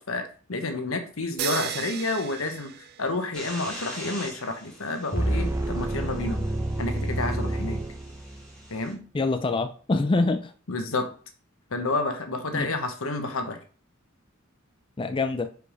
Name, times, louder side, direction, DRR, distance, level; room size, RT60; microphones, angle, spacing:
voice 1, 0.0-2.7 3.0-6.5 6.8-7.8 8.7-9.0 10.7-11.1 11.7-13.6, left 2 dB, 80° left, 1.2 m, -30 dB
sound 1, 1.4-3.5, right 11 dB, 50° right, 0.4 m, -35 dB
sound 2, 3.3-8.9, equal, 5° left, 2.3 m, -44 dB
sound 3, 5.1-8.6, right 1 dB, 10° right, 0.7 m, -28 dB
voice 2, 9.1-10.5 12.5-12.7 15.0-15.5, left 3 dB, 25° left, 0.4 m, -25 dB
5.0 x 4.8 x 5.0 m
head